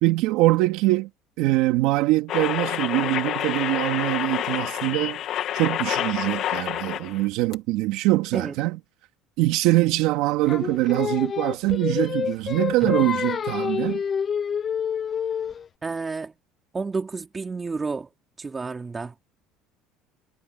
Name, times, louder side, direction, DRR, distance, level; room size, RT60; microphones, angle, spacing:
voice 1, 0.0-1.1 1.4-5.2 5.5-8.8 9.4-14.0, right 18 dB, 70° right, 3.3 m, -23 dB
sound 1, 2.3-7.2 7.5-7.6, left 12 dB, 50° left, 2.7 m, -28 dB
Singing, 10.5-15.7, left 7 dB, 25° left, 0.7 m, -27 dB
voice 2, 15.8-16.3 16.7-18.1 18.4-19.3, right 4 dB, 15° right, 3.7 m, -30 dB
cardioid pair, 150°, 0 cm